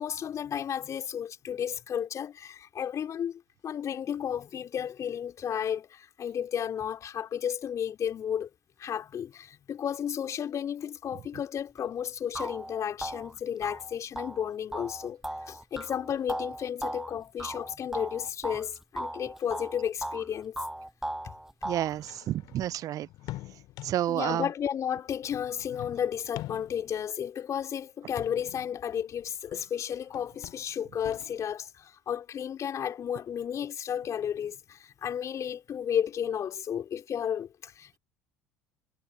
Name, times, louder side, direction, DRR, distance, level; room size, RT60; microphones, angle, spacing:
voice 1, 0.0-8.5 8.8-15.2 15.5-20.6 24.1-38.0, left 8 dB, 40° left, 3.6 m, -33 dB
sound 1, 11.8-11.9 12.3-18.7 19.0-20.3 20.6-22.0, right 1 dB, 5° right, 7.9 m, -37 dB
sound 2, 20.0-20.1 20.6-20.7 21.7-24.2 25.2-27.0 28.1-29.8 30.0-31.5, left 17 dB, 55° left, 2.9 m, -45 dB
voice 2, 21.6-23.1 23.8-24.5, right 12 dB, 45° right, 0.6 m, -30 dB
figure-of-eight pair, 60°, 8 cm